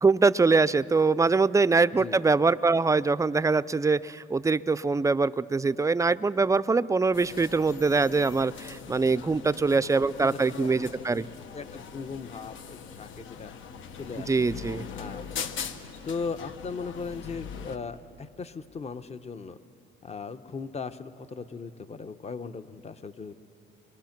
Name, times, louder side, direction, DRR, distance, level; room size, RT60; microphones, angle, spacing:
voice 1, 0.0-11.3 14.3-14.9, right 4 dB, 15° right, 16 dB, 0.4 m, -23 dB
sound 1, 7.1-17.8, left 7 dB, 75° left, 1.1 m, -41 dB
voice 2, 10.2-10.7 11.0-11.2 11.5-13.5 14.0-14.3 14.9-15.3 16.1-19.6 20.0-23.3, left 5 dB, 35° left, 12 dB, 0.8 m, -38 dB
26.0 x 22.5 x 5.9 m, 2.9 s
cardioid pair, 90°, 20 cm